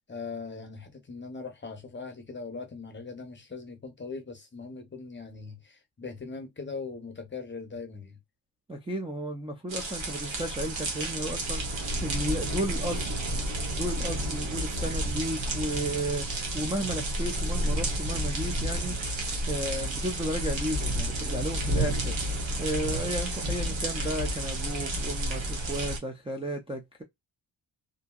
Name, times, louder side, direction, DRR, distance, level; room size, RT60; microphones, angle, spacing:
voice 1, 0.1-8.2 14.1-14.4, left 4 dB, 25° left, 0.6 m, -40 dB
voice 2, 8.7-13.2 13.7-27.0, right 1 dB, 15° right, 0.4 m, -34 dB
sound 1, 9.7-26.0, right 1 dB, 85° right, 1.1 m, -31 dB
2.7 x 2.7 x 2.2 m
wide cardioid pair, 160°, 45 cm